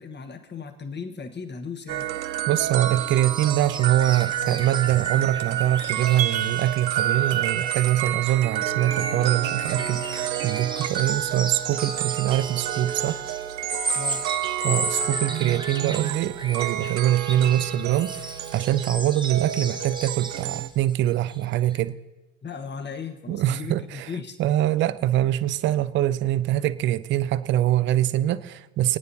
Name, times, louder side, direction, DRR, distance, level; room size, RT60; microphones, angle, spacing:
voice 1, 0.0-2.1 13.9-14.3 22.4-24.4, left 5 dB, 20° left, 6 dB, 1.3 m, -36 dB
sound 1, 1.9-20.7, right 11 dB, 80° right, 0.6 m, -30 dB
voice 2, 2.5-13.2 14.6-22.0 23.3-24.1 24.4-29.0, right 13 dB, 25° right, 16 dB, 0.4 m, -24 dB
sound 2, 2.6-8.1 8.4-21.0 21.3-21.4 21.7-21.8, right 2 dB, 10° right, 1.1 m, -35 dB
28.5 x 9.5 x 2.8 m, 1.1 s
figure-of-eight pair, 65°, 49 cm